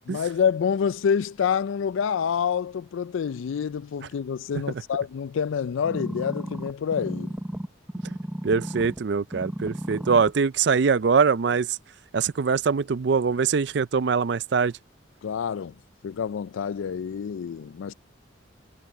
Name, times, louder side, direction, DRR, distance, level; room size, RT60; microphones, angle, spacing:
voice 1, 0.1-7.3 15.2-15.7 16.0-17.9, left 7 dB, 75° left, 0.3 m, -27 dB
sound 1, 5.8-9.0 9.3-10.3 10.9-11.0, equal, 5° right, 0.6 m, -34 dB
voice 2, 8.4-11.8 12.1-14.7, right 5 dB, 55° right, 0.4 m, -23 dB
head